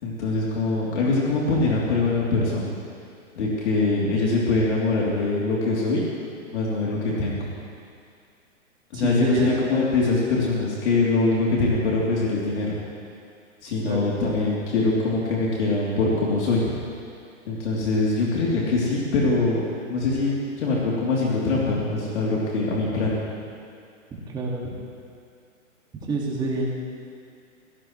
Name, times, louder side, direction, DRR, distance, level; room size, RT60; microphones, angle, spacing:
voice 1, 0.0-2.7 3.4-6.1 6.5-7.5 8.9-12.8 13.6-16.6 17.5-19.6 19.9-23.2, left 3 dB, 55° left, -5 dB, 3.4 m, -23 dB
voice 2, 8.9-9.6 13.8-14.1 24.3-24.8 26.1-26.7, right 3 dB, 10° right, -4 dB, 2.2 m, -27 dB
25.0 x 17.0 x 3.3 m, 2.4 s
hypercardioid pair, 160°, 41 cm